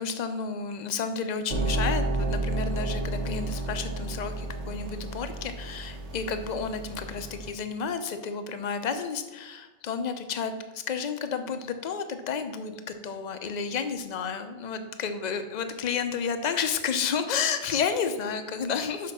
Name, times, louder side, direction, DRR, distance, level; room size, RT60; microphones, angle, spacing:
voice 1, 0.0-19.1, left 6 dB, 45° left, 9 dB, 0.7 m, -31 dB
sound 1, 1.5-7.5, right 2 dB, 80° right, 1.4 m, -31 dB
5.9 x 5.5 x 6.1 m, 1.3 s
omnidirectional pair, 1.2 m